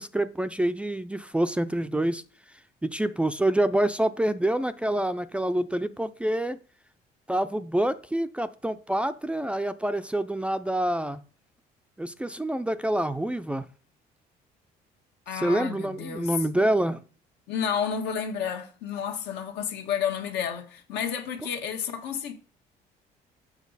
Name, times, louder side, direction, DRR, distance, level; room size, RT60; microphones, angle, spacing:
voice 1, 0.0-2.2 2.8-6.6 7.3-11.2 12.0-13.7 15.3-17.0, right 1 dB, 5° right, 0.4 m, -27 dB
voice 2, 15.3-16.4 17.5-22.3, left 7 dB, 80° left, 1.5 m, -31 dB
7.3 x 6.1 x 4.0 m
cardioid pair, 110°, 17 cm